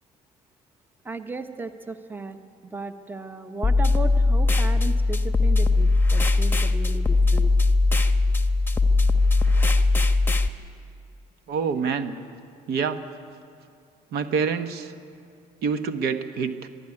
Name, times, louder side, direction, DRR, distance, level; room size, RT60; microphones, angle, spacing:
voice 1, 1.0-7.5, right 3 dB, 10° right, 9 dB, 0.9 m, -35 dB
sound 1, 3.6-10.5, left 3 dB, 10° left, 1.1 m, -20 dB
voice 2, 11.5-12.1 12.7-13.0 14.1-14.9 15.6-16.7, right 5 dB, 70° right, 9 dB, 1.2 m, -26 dB
22.0 x 12.5 x 9.8 m, 2.4 s
cardioid pair, 110°, 17 cm